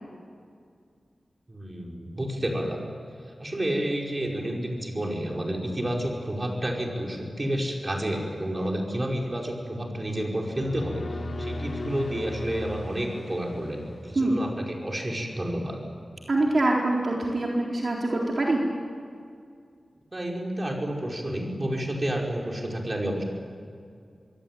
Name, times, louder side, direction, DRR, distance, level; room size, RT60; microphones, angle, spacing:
voice 1, 1.5-2.9 3.4-15.8 20.1-23.2, right 1 dB, 30° right, 0 dB, 5.4 m, -30 dB
sound 1, 10.3-14.7, left 2 dB, 70° left, 3.3 m, -37 dB
voice 2, 16.3-18.6, right 2 dB, 55° right, -2 dB, 3.9 m, -24 dB
25.5 x 23.0 x 9.3 m, 2.2 s
wide cardioid pair, 70°, 0 cm